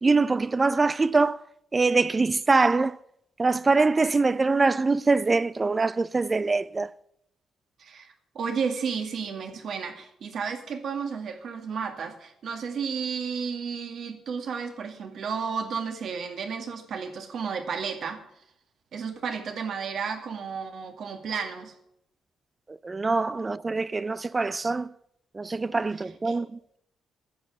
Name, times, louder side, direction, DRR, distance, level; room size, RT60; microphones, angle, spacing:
voice 1, 0.0-1.4 1.7-3.0 3.4-6.9 22.7-24.9 25.3-26.6, right 3 dB, 25° right, 0.3 m, -23 dB
voice 2, 7.8-18.2 18.9-21.7 26.2-26.4, right 6 dB, 65° right, 2.1 m, -32 dB
10.5 x 7.8 x 8.0 m
cardioid pair, 100°, 0 cm